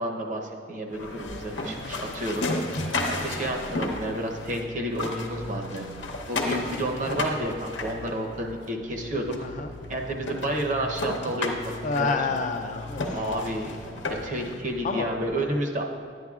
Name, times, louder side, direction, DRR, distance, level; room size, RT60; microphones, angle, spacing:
voice 1, 0.0-2.4 3.1-5.8 6.3-9.3 9.9-11.5 11.8-12.1 13.1-13.7 14.1-15.8, right 1 dB, 45° right, 2 dB, 0.8 m, -30 dB
sound 1, 0.9-4.6 4.9-8.6 9.3-9.4 9.8-9.9 10.2-14.5, left 2 dB, 90° left, 0.9 m, -33 dB
sound 2, 1.2-15.3, left 1 dB, 75° right, 1.3 m, -43 dB
voice 2, 11.8-13.3 14.8-15.1, left 4 dB, 40° left, 6 dB, 0.4 m, -29 dB
11.0 x 9.4 x 2.4 m, 2.1 s
head